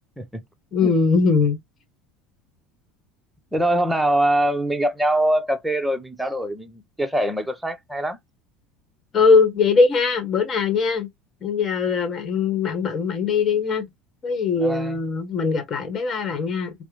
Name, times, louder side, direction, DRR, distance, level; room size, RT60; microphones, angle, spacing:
voice 1, 0.7-1.6 9.1-11.1 11.4-13.8 14.2-16.7, left 4 dB, 35° left, 1.2 m, -20 dB
voice 2, 3.5-8.2 14.6-15.0, right 1 dB, 5° right, 0.8 m, -23 dB
4.6 x 2.1 x 2.9 m
hypercardioid pair, 80°, 0 cm